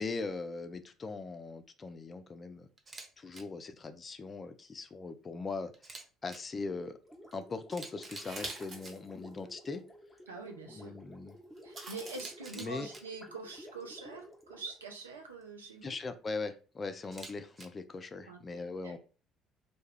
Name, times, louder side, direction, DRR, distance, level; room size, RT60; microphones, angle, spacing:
voice 1, 0.0-2.7 3.2-5.7 6.2-7.0 7.3-9.8 10.7-11.3 12.6-12.9 15.8-19.0, left 4 dB, 35° left, 10 dB, 0.4 m, -40 dB
Camera, 2.8-3.1 3.3-3.4 5.7-6.4 7.3-7.4 7.7-8.9 12.1-13.0 17.0-17.7, right 3 dB, 30° right, 0.6 m, -47 dB
Gurgling, 7.0-15.4, equal, ahead, 0.9 m, -54 dB
sound 1, 8.1-9.0 9.5-9.6 11.6-12.3, right 2 dB, 50° right, 0.9 m, -44 dB
voice 2, 10.3-11.0 11.6-16.0 18.3-19.0, right 3 dB, 85° right, 3 dB, 0.5 m, -45 dB
2.3 x 2.1 x 3.2 m, 0.37 s
figure-of-eight pair, 55°, 0 cm